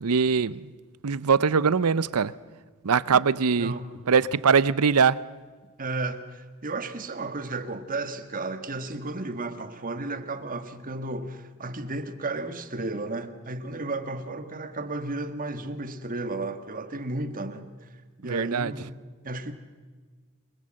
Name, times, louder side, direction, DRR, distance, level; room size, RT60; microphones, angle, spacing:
voice 1, 0.0-0.7 1.0-2.3 2.8-3.8 4.1-5.2 18.2-18.7, right 5 dB, 85° right, 0.7 m, -22 dB
voice 2, 5.8-17.7 18.2-19.0 19.2-19.5, right 2 dB, 40° right, 1.6 m, -33 dB
28.0 x 21.0 x 7.7 m
head